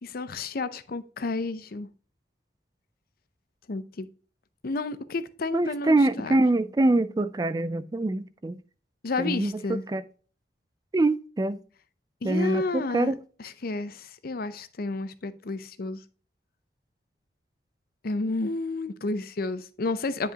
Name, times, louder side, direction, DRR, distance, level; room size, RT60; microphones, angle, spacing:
voice 1, 0.0-1.9 3.7-4.1 4.6-6.4 9.0-9.8 12.2-13.1 13.6-16.0 18.0-20.3, left 3 dB, 55° left, 0.6 m, -31 dB
voice 2, 5.5-8.6 9.2-10.1 10.9-11.6 12.2-13.1, right 2 dB, 20° right, 0.4 m, -24 dB
9.8 x 5.5 x 2.9 m
head